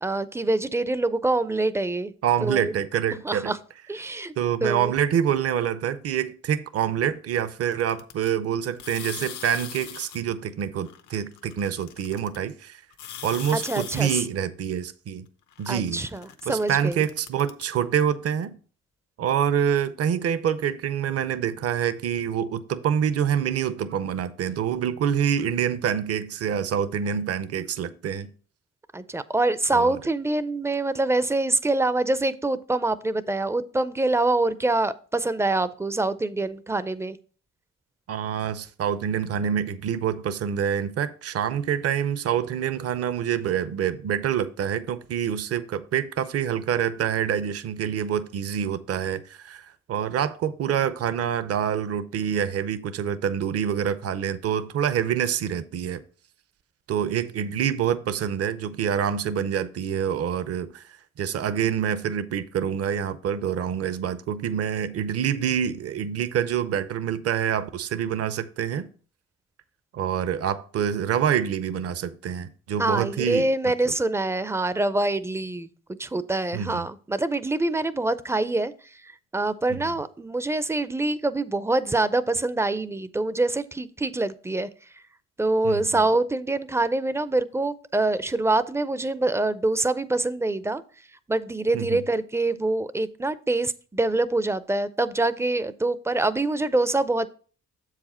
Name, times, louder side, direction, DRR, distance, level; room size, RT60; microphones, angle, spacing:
voice 1, 0.0-2.1 2.4-2.7 3.2-3.6 3.9-4.3 4.6-4.9 13.5-14.2 15.7-17.0 28.9-37.2 72.8-78.7 79.3-84.7 85.4-90.8 91.3-97.3, right 2 dB, 10° right, 0.4 m, -25 dB
voice 2, 2.2-3.5 4.4-12.8 13.2-15.3 15.6-16.0 16.5-18.6 19.2-28.3 29.7-30.0 38.1-56.0 56.9-60.9 61.2-68.9 69.9-73.5 76.5-76.9 79.7-79.8 85.6-85.9 91.7-92.0, right 9 dB, 50° right, 0.6 m, -26 dB
sound 1, 7.7-8.3 8.7-10.2 10.8-12.4 12.9-14.2 15.5-17.6, left 10 dB, 80° left, 0.8 m, -40 dB
7.3 x 4.9 x 4.2 m
cardioid pair, 90°, 30 cm